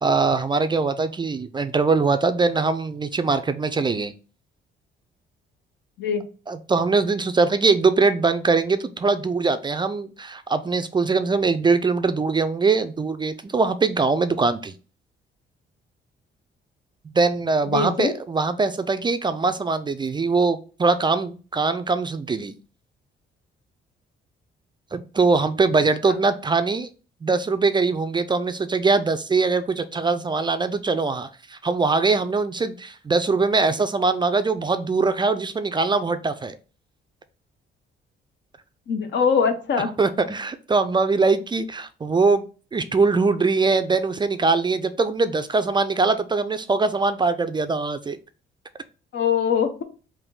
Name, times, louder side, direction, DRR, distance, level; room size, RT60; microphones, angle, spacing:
voice 1, 0.0-4.1 6.5-14.7 17.1-22.5 24.9-26.9 27.2-36.6 40.0-42.4 42.7-48.2, right 4 dB, 25° right, 10 dB, 0.3 m, -22 dB
voice 2, 17.6-18.1 38.9-39.9 49.1-49.8, left 6 dB, 65° left, 8 dB, 0.7 m, -22 dB
3.5 x 2.6 x 3.8 m, 0.36 s
cardioid pair, 90°, 20 cm